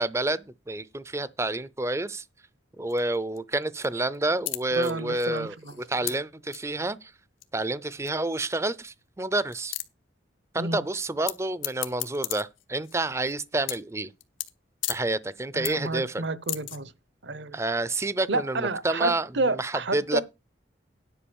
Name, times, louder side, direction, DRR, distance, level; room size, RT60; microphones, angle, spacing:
voice 1, 0.0-2.2 2.8-5.5 5.9-7.1 7.5-9.7 10.5-14.1 14.9-16.2 17.5-20.2, right 2 dB, 15° right, 0.5 m, -29 dB
sound 1, 2.9-3.4 3.6-3.9 4.1-4.2 4.5-6.1 6.5-6.6 7.4-7.5 8.1-8.2 8.4-8.5 8.7-8.8 9.2-9.3 9.5-9.8 11.3-11.4 11.6-13.3 13.6-13.9 14.2-14.5 14.8-15.0 15.4-15.9 16.2-16.8, left 15 dB, 85° left, 1.1 m, -33 dB
voice 2, 4.7-5.8 10.6-10.8 15.5-16.9 17.2-17.6 18.3-20.2, right 2 dB, 60° right, 0.8 m, -30 dB
10.0 x 5.0 x 7.0 m
head